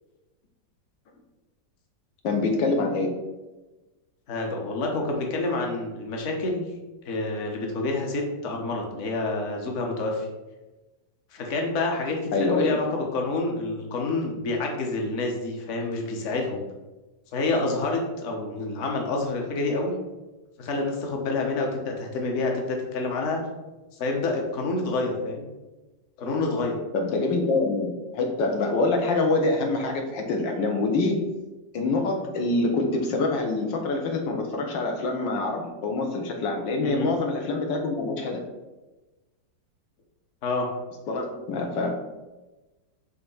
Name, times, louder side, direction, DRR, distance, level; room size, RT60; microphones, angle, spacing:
voice 1, 2.2-3.2 12.3-12.8 26.9-31.2 31.7-38.4 41.1-41.9, left 3 dB, 75° left, 2 dB, 1.6 m, -25 dB
voice 2, 4.3-6.7 7.0-10.3 11.3-16.6 17.3-20.0 20.6-23.4 23.9-25.5 26.2-26.8 36.8-37.1 40.4-40.7, left 2 dB, 45° left, 1 dB, 1.2 m, -28 dB
5.6 x 3.5 x 5.4 m, 1.1 s
omnidirectional pair, 2.0 m